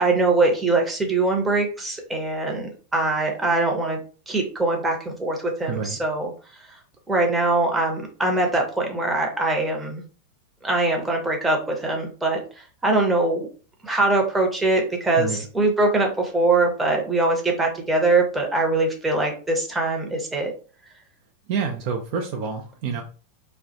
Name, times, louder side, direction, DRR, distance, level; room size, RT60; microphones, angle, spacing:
voice 1, 0.0-4.0 4.3-6.3 6.7-6.8 7.1-10.0 10.6-13.5 13.8-20.5, right 2 dB, 10° right, 1 dB, 0.7 m, -22 dB
voice 2, 5.7-6.0 15.2-15.5 21.5-23.0, right 6 dB, 45° right, 3 dB, 0.4 m, -28 dB
2.2 x 2.1 x 2.8 m, 0.38 s
figure-of-eight pair, 90°, 0 cm